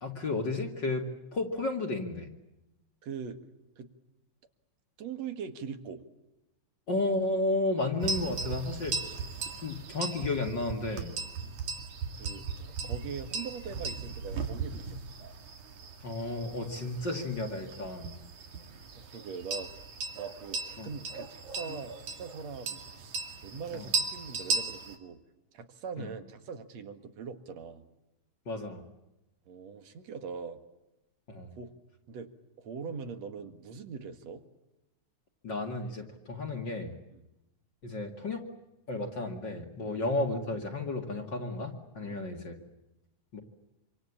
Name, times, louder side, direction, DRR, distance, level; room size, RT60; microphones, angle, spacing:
voice 1, 0.0-2.3 6.9-9.0 9.6-11.2 16.0-18.2 20.8-20.9 23.7-23.9 26.0-26.1 28.5-28.8 31.3-31.5 35.4-36.9 37.8-38.4 38.9-42.6 43.3-43.4, left 2 dB, 40° left, 3 dB, 2.6 m, -33 dB
voice 2, 3.0-3.4 3.8-3.9 5.0-6.0 12.1-15.3 19.0-19.7 20.1-25.2 25.5-27.9 29.5-30.6 31.5-31.7 32.1-32.3 32.6-34.4 37.1-37.2 39.9-40.0 42.0-42.2, right 6 dB, 65° right, 8 dB, 2.9 m, -42 dB
sound 1, 8.0-25.0, right 4 dB, 85° right, 4.0 m, -37 dB
26.5 x 26.0 x 8.6 m, 0.92 s
omnidirectional pair, 3.3 m